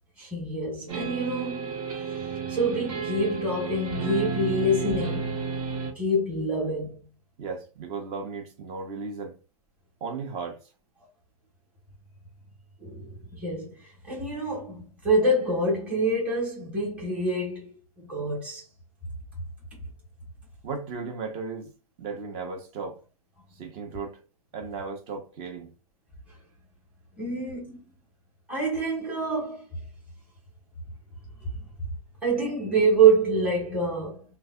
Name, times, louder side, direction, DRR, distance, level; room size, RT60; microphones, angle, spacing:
voice 1, 0.2-1.8 2.5-5.4 5.9-7.0 12.8-17.7 18.0-18.6 27.2-27.8 28.5-29.6 31.4-31.5 32.2-34.2, right 2 dB, 5° right, 1.2 m, -26 dB
sound 1, 0.9-5.9, right 5 dB, 60° right, 1.4 m, -32 dB
voice 2, 7.4-9.4 10.0-10.6 20.6-21.7 22.0-23.0 23.6-24.2 24.5-25.7, right 4 dB, 35° right, 0.9 m, -35 dB
3.2 x 2.2 x 3.6 m
hypercardioid pair, 140°, 19 cm